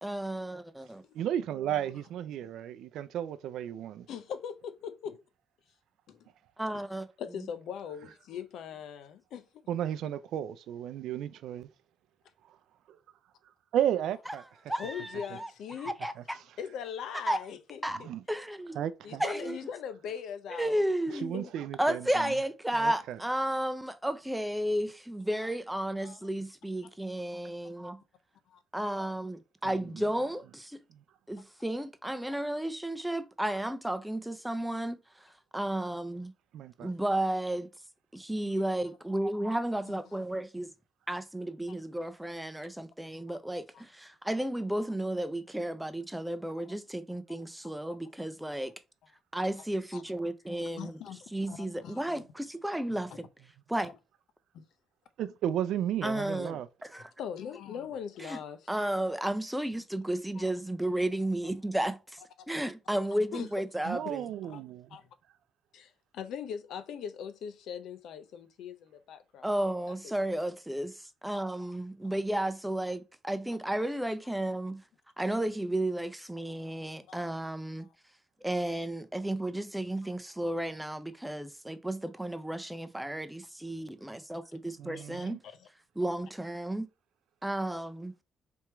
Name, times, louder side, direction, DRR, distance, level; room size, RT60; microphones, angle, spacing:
voice 1, 0.0-1.0 6.6-7.1 14.7-15.5 15.8-16.4 17.3-17.4 17.8-18.0 18.3-18.8 19.2-19.6 20.5-21.5 21.8-28.0 28.7-30.8 31.3-36.3 36.8-37.7 38.1-40.7 41.1-48.7 49.3-51.0 51.3-53.3 53.7-53.9 56.0-57.1 58.2-58.4 58.7-64.3 69.4-74.8 75.2-77.9 78.4-85.4 86.0-86.9 87.4-88.1, right 1 dB, 5° right, 0.6 m, -33 dB
voice 2, 1.1-4.1 9.7-11.7 12.9-13.0 13.4-14.4 16.2-16.3 17.9-18.2 18.7-19.2 21.2-22.3 22.7-23.2 29.6-30.0 30.9-31.0 36.5-36.9 55.2-56.7 63.8-65.0 84.8-85.4, right 10 dB, 80° right, 0.4 m, -34 dB
voice 3, 4.1-5.2 6.1-6.3 6.7-6.8 7.2-9.7 14.7-15.9 16.6-18.1 19.0-20.8 21.1-21.5 26.0-26.2 26.8-26.9 28.5-28.6 36.8-36.9 39.9-40.3 43.7-43.8 47.6-47.7 49.9-50.0 50.8-52.2 53.1-53.2 54.5-54.6 57.2-58.7 60.4-60.5 61.8-61.9 62.4-62.5 63.3-63.5 64.5-64.6 64.9-65.1 65.7-69.5 70.0-70.2 71.7-71.8 77.1-77.3 77.8-77.9 85.1-85.7, left 8 dB, 80° left, 0.6 m, -41 dB
3.5 x 3.0 x 4.4 m
cardioid pair, 90°, 0 cm